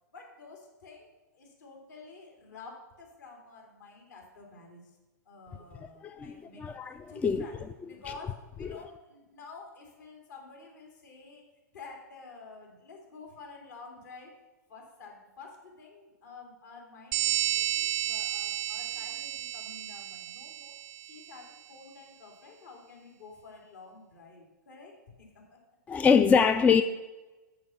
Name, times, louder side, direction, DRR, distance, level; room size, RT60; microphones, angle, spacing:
voice 1, 0.1-5.0 5.2-6.8 7.1-7.6 7.9-11.4 11.7-14.3 14.7-20.7 21.0-25.6, left 4 dB, 70° left, 2.6 m, -50 dB
voice 2, 6.6-6.9 7.2-7.4 8.7-8.8 25.9-26.8, left 6 dB, 15° left, 0.3 m, -23 dB
sound 1, 17.1-21.4, right 12 dB, 40° right, 0.5 m, -32 dB
6.6 x 5.7 x 6.8 m
hypercardioid pair, 105°, 10 cm